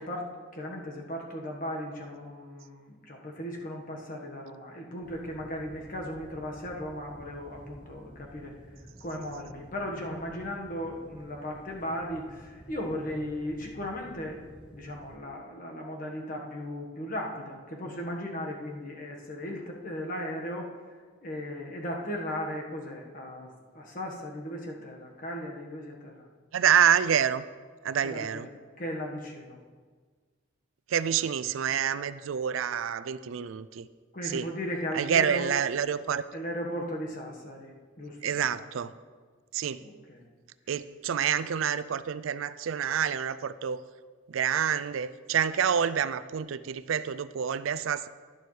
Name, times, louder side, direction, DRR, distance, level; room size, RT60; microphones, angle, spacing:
voice 1, 0.1-8.5 9.0-14.4 14.7-20.7 21.2-26.3 28.0-28.5 28.8-29.6 34.1-35.5 36.3-38.6 39.8-40.3, equal, 45° left, 0 dB, 1.4 m, -37 dB
sound 1, 5.0-15.2, equal, 5° right, 0.8 m, -51 dB
voice 2, 26.5-27.4 27.8-28.5 30.9-33.9 34.2-34.5 34.9-36.2 38.2-38.9 39.5-39.8 40.7-43.8 44.3-48.1, right 8 dB, 85° right, 14 dB, 0.4 m, -27 dB
11.0 x 11.0 x 3.3 m, 1.5 s
head